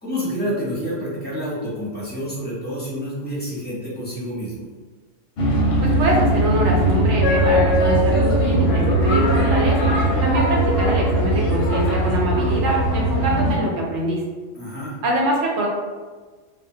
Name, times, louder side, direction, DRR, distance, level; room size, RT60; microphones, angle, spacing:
voice 1, 0.0-4.7 14.5-15.0, equal, 10° left, -10 dB, 0.7 m, -28 dB
sound 1, 5.4-13.6, right 1 dB, 60° left, 0.7 m, -19 dB
voice 2, 5.8-14.2 15.0-15.7, right 1 dB, 70° right, -2 dB, 0.9 m, -24 dB
2.3 x 2.1 x 2.6 m, 1.4 s
omnidirectional pair, 1.3 m